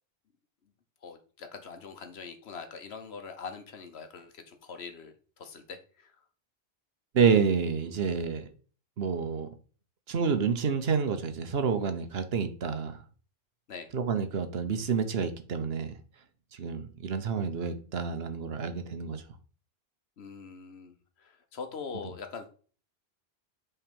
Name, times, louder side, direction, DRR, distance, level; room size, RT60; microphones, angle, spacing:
voice 1, 1.0-6.2 13.7-13.9 20.2-22.5, left 5 dB, 80° left, 1.3 m, -43 dB
voice 2, 7.1-8.5 9.0-9.5 10.1-13.0 13.9-15.9 16.6-19.2, right 6 dB, 70° right, 1.1 m, -28 dB
5.7 x 3.6 x 5.2 m
omnidirectional pair, 1.1 m